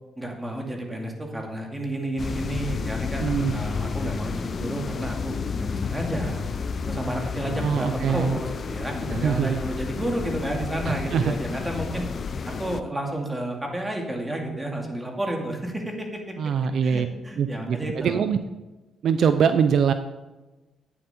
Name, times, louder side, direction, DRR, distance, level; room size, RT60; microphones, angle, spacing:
voice 1, 0.2-6.5 6.9-12.1 12.5-16.4 16.8-18.2, right 1 dB, 15° right, 1 dB, 2.4 m, -31 dB
sound 1, 2.2-12.8, left 5 dB, 45° left, 0.6 m, -31 dB
voice 2, 3.2-3.6 7.6-8.3 9.1-9.6 10.9-11.4 16.4-17.1 17.4-18.4 19.0-19.9, right 7 dB, 65° right, 10 dB, 0.6 m, -23 dB
11.0 x 9.2 x 4.4 m, 1.1 s
cardioid pair, 90°, 0 cm